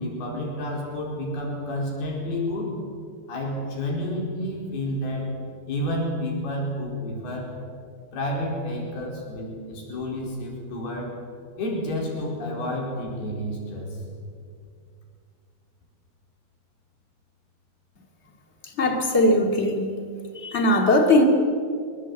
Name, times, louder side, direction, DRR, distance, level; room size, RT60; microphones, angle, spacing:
voice 1, 0.0-2.8 3.3-5.3 5.7-7.5 8.1-11.1 11.6-14.0, left 1 dB, 90° left, -1 dB, 6.4 m, -30 dB
voice 2, 18.8-19.9 20.3-21.3, left 1 dB, 20° left, 3 dB, 2.3 m, -19 dB
24.0 x 19.5 x 8.4 m, 2.3 s
omnidirectional pair, 4.3 m